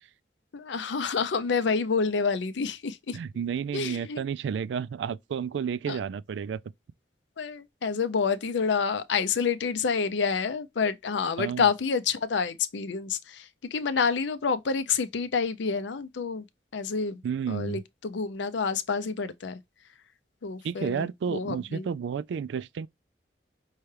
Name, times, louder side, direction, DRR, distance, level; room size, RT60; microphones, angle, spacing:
voice 1, 0.5-3.2 3.7-4.2 5.9-6.0 7.4-16.5 16.7-17.2 17.5-19.6 20.4-21.9, left 5 dB, 80° left, 0.5 m, -28 dB
voice 2, 3.1-6.6 11.4-11.7 17.2-17.8 20.6-22.9, right 7 dB, 75° right, 0.3 m, -31 dB
5.5 x 2.3 x 3.2 m
head